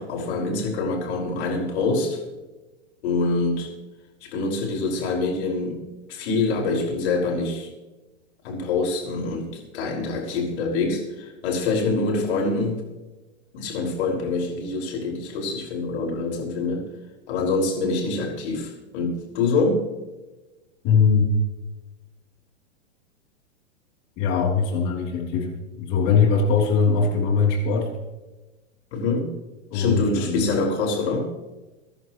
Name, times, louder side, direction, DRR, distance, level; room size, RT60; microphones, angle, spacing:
voice 1, 0.0-2.2 3.0-3.7 4.2-5.7 6.1-7.7 8.4-9.5 9.7-12.8 13.5-16.9 17.3-19.8 28.9-29.3 29.7-31.3, left 3 dB, 65° left, -1 dB, 5.8 m, -25 dB
voice 2, 20.8-21.3 24.2-25.5 25.8-27.9 29.7-30.5, left 5 dB, 45° left, 0 dB, 3.4 m, -21 dB
24.0 x 11.0 x 3.2 m, 1.1 s
hypercardioid pair, 125°, 36 cm